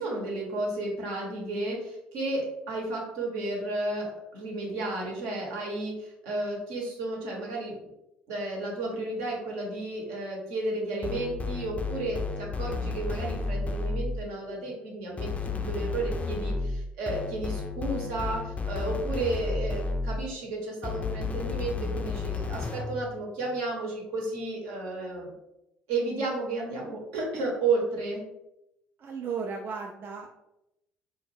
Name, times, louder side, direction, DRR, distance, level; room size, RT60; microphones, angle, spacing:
voice 1, 0.0-7.7 8.3-25.3 25.9-28.2, right 2 dB, 75° right, -1 dB, 0.8 m, -32 dB
sound 1, 11.0-14.3 15.2-20.3 20.8-23.0, left 3 dB, 25° left, 0.3 m, -32 dB
voice 2, 29.0-30.3, right 5 dB, 45° right, 1 dB, 0.3 m, -35 dB
2.3 x 2.0 x 3.2 m, 0.88 s
hypercardioid pair, 60°, 5 cm